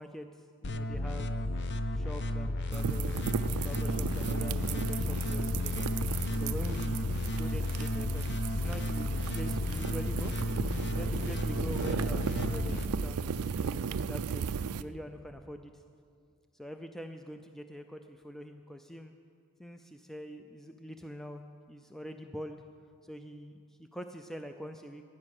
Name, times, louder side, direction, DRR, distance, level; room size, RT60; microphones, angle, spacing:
voice 1, 0.0-1.4 1.9-8.2 8.6-10.3 10.9-13.2 13.6-15.8 16.5-19.1 19.6-22.6 23.0-25.0, equal, ahead, 6 dB, 0.4 m, -44 dB
sound 1, 0.6-12.8, left 1 dB, 50° left, 0.6 m, -33 dB
sound 2, 2.7-14.8, right 6 dB, 85° right, 0.4 m, -36 dB
15.0 x 9.8 x 6.5 m, 2.3 s
head